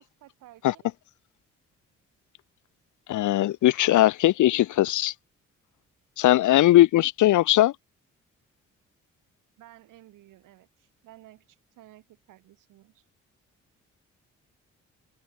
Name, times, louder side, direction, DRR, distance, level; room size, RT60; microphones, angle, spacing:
voice 1, 0.2-0.9 9.6-13.0, right 15 dB, 85° right, 5.9 m, -54 dB
voice 2, 3.1-5.1 6.2-7.7, left 14 dB, 70° left, 0.7 m, -19 dB
supercardioid pair, 60°, 31 cm